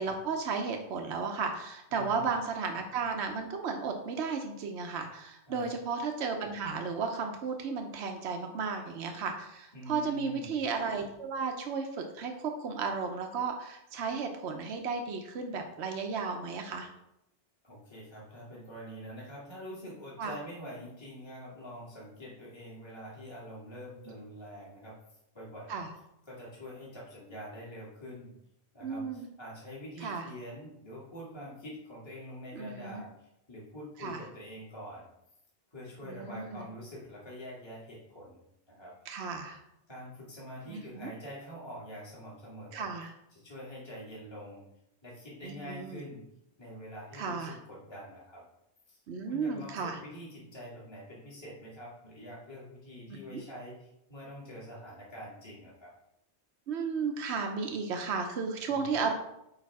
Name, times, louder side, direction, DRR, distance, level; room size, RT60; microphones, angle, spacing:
voice 1, 0.0-16.9 20.2-20.3 25.7-25.9 28.8-29.3 30.0-30.3 32.5-33.0 34.0-34.2 36.0-36.6 39.1-39.6 40.7-41.1 42.7-43.1 45.4-46.0 47.1-47.6 49.1-50.0 53.3-53.4 56.7-59.1, right 5 dB, 80° right, 4 dB, 1.0 m, -34 dB
voice 2, 1.9-2.3 5.5-5.7 9.7-10.5 17.6-25.0 25.3-25.8 26.3-28.3 28.7-35.1 35.7-38.9 39.9-42.9 43.3-44.6 45.0-46.2 46.6-48.4 48.9-55.9 58.7-59.0, equal, 25° left, -6 dB, 1.8 m, -45 dB
8.9 x 3.3 x 4.6 m, 0.82 s
omnidirectional pair, 1.1 m